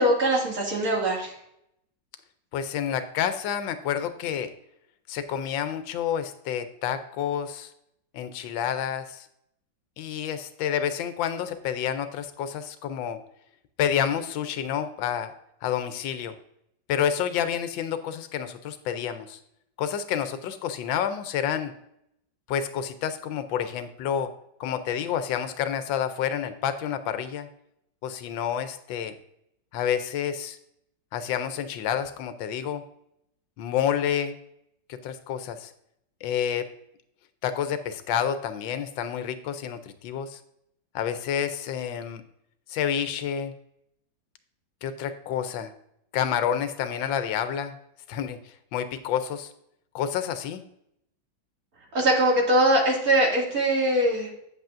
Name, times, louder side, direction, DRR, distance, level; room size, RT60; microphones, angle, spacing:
voice 1, 0.0-1.3 51.9-54.3, right 1 dB, 50° right, -2 dB, 2.7 m, -22 dB
voice 2, 2.5-4.5 5.1-7.7 8.1-9.3 10.0-13.2 13.8-15.3 15.6-16.4 16.9-19.4 19.8-21.7 22.5-24.3 24.6-27.5 28.0-29.1 29.7-30.6 31.1-32.8 33.6-34.4 34.9-35.7 36.2-36.7 37.4-40.4 40.9-42.2 42.7-43.5 44.8-45.7 46.1-47.7 48.1-49.5 49.9-50.6, left 9 dB, 90° left, 10 dB, 1.4 m, -29 dB
8.9 x 8.1 x 2.5 m, 0.75 s
omnidirectional pair, 2.0 m